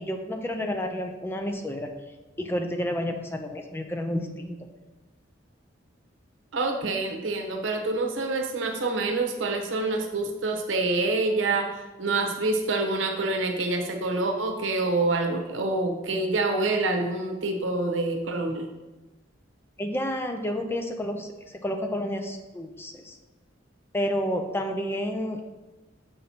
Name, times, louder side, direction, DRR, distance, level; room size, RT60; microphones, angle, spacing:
voice 1, 0.0-1.9 2.4-4.6 19.8-23.2 23.9-25.4, equal, 10° left, 4 dB, 0.4 m, -30 dB
voice 2, 6.5-18.7, right 2 dB, 90° right, 3 dB, 0.8 m, -27 dB
6.4 x 5.9 x 2.8 m, 1.1 s
head